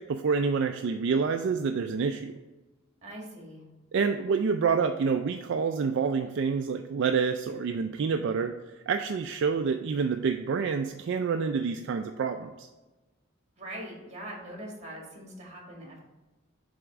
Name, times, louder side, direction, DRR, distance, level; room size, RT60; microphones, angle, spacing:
voice 1, 0.0-2.3 3.9-8.5 8.9-12.7, right 5 dB, 60° right, 6 dB, 0.3 m, -27 dB
voice 2, 3.0-3.6 13.6-16.0, right 1 dB, 35° right, -1 dB, 1.7 m, -42 dB
7.2 x 3.5 x 4.7 m, 1.1 s
head